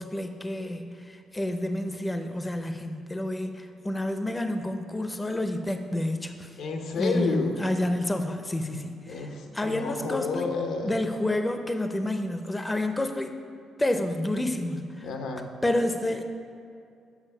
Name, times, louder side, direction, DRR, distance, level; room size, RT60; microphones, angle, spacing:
voice 1, 0.0-6.6 7.0-9.3 9.5-10.5 10.8-13.4 13.8-15.1 15.6-16.2, left 1 dB, 15° left, 7 dB, 0.5 m, -29 dB
voice 2, 6.6-7.5 9.1-11.1 15.0-15.5, left 4 dB, 85° left, 4 dB, 0.8 m, -30 dB
7.1 x 4.6 x 5.5 m, 2.5 s
cardioid pair, 90°, 0 cm